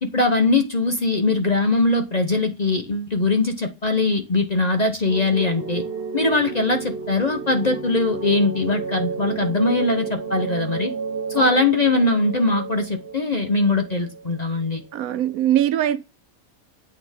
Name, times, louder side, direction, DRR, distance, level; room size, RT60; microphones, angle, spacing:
voice 1, 0.0-5.8 6.1-10.9 11.3-14.8, left 3 dB, 35° left, 0.7 m, -21 dB
sound 1, 5.1-15.2, right 5 dB, 50° right, 0.9 m, -32 dB
voice 2, 14.9-16.0, right 12 dB, 75° right, 1.1 m, -21 dB
8.5 x 4.3 x 3.4 m
omnidirectional pair, 1.5 m